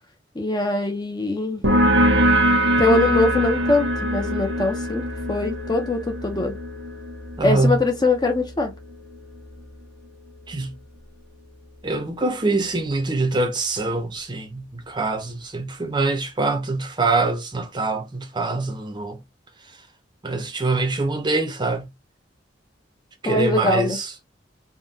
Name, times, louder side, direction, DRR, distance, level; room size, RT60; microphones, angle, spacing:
voice 1, 0.4-1.6 2.8-6.5 7.4-8.7 23.3-24.0, left 2 dB, 20° left, 0.6 m, -22 dB
sound 1, 1.6-8.9, equal, 80° right, 1.0 m, -22 dB
voice 2, 7.4-7.8 10.5-10.7 11.8-19.2 20.2-21.9 23.2-24.1, right 2 dB, 25° right, 0.6 m, -24 dB
3.6 x 2.2 x 2.7 m
head